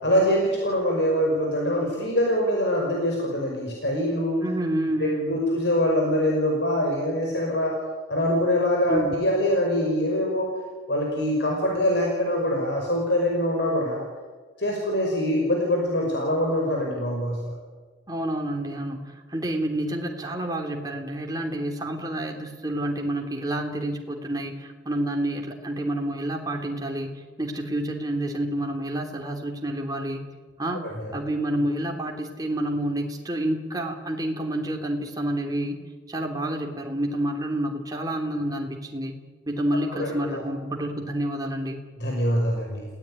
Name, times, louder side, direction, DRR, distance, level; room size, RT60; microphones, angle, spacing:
voice 1, 0.0-4.5 5.0-7.8 8.1-10.5 10.9-14.0 14.6-17.5 30.8-31.1 39.9-40.4 42.0-42.9, equal, 65° left, 0 dB, 5.5 m, -24 dB
voice 2, 4.4-5.4 8.9-9.1 18.1-30.3 30.6-30.9 31.1-35.8 36.1-39.2 39.5-41.8, right 1 dB, 20° right, 1 dB, 3.3 m, -29 dB
29.5 x 17.5 x 9.8 m, 1.4 s
head